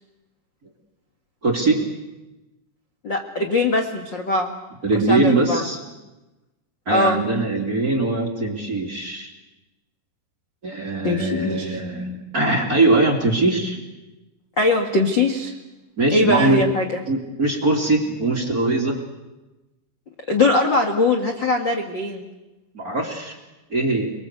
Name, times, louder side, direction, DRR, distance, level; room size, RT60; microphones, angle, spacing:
voice 1, 1.4-1.9 4.8-5.8 6.9-9.3 10.6-13.8 16.0-16.7 17.1-19.0 22.7-23.4 23.7-24.1, right 2 dB, 25° right, 1 dB, 2.5 m, -21 dB
voice 2, 3.0-4.5 5.1-5.6 6.9-7.2 11.0-11.8 14.6-15.5 16.1-17.0 20.3-22.3, left 2 dB, 50° left, 3 dB, 1.3 m, -21 dB
29.5 x 22.0 x 8.2 m, 1.1 s
omnidirectional pair, 5.2 m